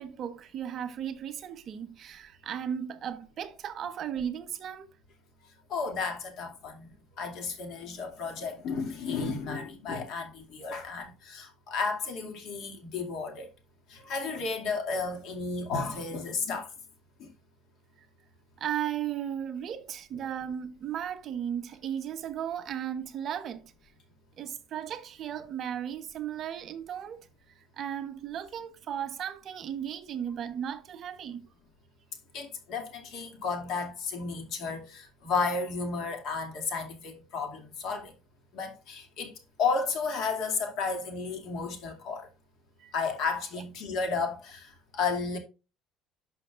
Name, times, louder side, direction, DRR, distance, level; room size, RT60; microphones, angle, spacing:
voice 1, 0.0-4.9 18.6-23.6 24.4-27.2 27.8-31.5 42.8-42.9, right 9 dB, 35° right, 0.8 m, -35 dB
voice 2, 5.7-6.9 7.2-13.5 13.9-16.7 17.2-17.3 32.3-38.1 38.5-39.3 39.6-42.3 42.9-45.4, left 4 dB, 50° left, 2.3 m, -33 dB
11.5 x 6.0 x 2.4 m
cardioid pair, 170°, 0 cm